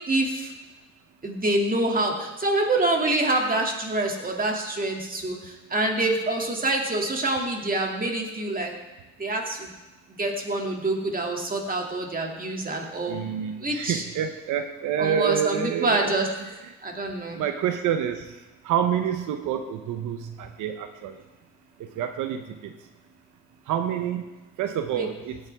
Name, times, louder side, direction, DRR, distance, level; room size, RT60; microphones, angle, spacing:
voice 1, 0.1-0.5 1.2-8.7 9.2-9.7 10.2-13.2 13.6-14.0 15.0-16.3 16.8-17.4 25.0-25.1, right 2 dB, 30° right, 1 dB, 2.5 m, -26 dB
voice 2, 13.1-16.1 17.3-18.3 18.6-21.1 22.0-22.7 23.7-24.2 24.6-25.4, right 9 dB, 85° right, 7 dB, 0.9 m, -27 dB
17.0 x 9.0 x 3.5 m, 1.1 s
cardioid pair, 90°, 30 cm